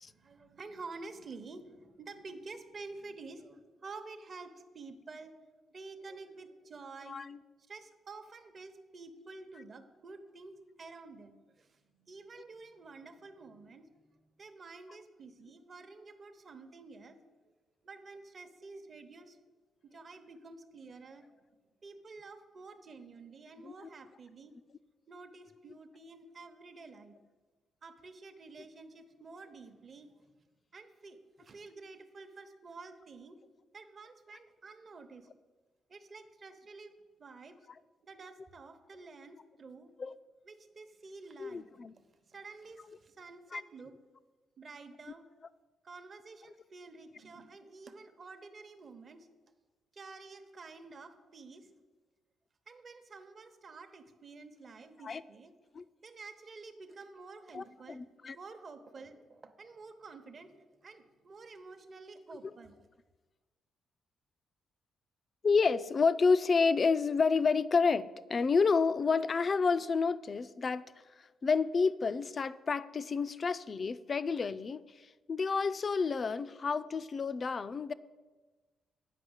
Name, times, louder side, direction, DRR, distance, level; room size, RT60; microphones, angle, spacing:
voice 1, 0.0-5.3 5.7-7.2 7.7-13.9 14.4-17.2 17.8-19.4 19.8-21.4 21.8-24.5 25.1-27.1 27.8-30.4 30.7-33.4 33.7-35.3 35.9-37.6 38.0-39.9 40.4-44.0 44.6-45.3 45.8-49.3 49.9-51.7 52.7-55.5 56.0-58.1 58.3-62.7, right 3 dB, 40° right, 0.9 m, -50 dB
voice 2, 7.1-7.4 23.6-23.7 40.0-40.1 41.4-41.9 43.5-43.6 55.0-55.2 55.7-55.8 57.5-58.4 65.4-70.8 71.4-74.8 75.3-77.9, left 5 dB, 35° left, 0.3 m, -29 dB
9.1 x 5.3 x 8.0 m
cardioid pair, 110°, 0 cm